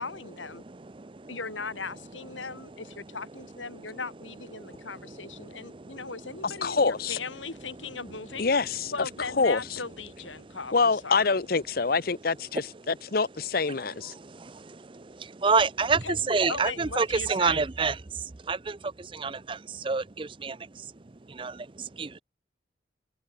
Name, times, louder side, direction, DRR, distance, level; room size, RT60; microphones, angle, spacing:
voice 1, 0.0-0.6 1.3-8.5 8.9-11.3 16.0-16.2 16.5-17.6, left 4 dB, 90° left, 4.7 m, -38 dB
voice 2, 0.5-1.4 2.3-4.0 4.5-6.8 7.5-8.8 10.3-10.6 12.5-13.2 13.7-22.2, right 4 dB, 25° right, 0.5 m, -31 dB
voice 3, 6.6-7.2 8.4-8.9 9.4-9.8 10.7-12.6 13.1-14.1, left 4 dB, 50° left, 0.7 m, -25 dB
head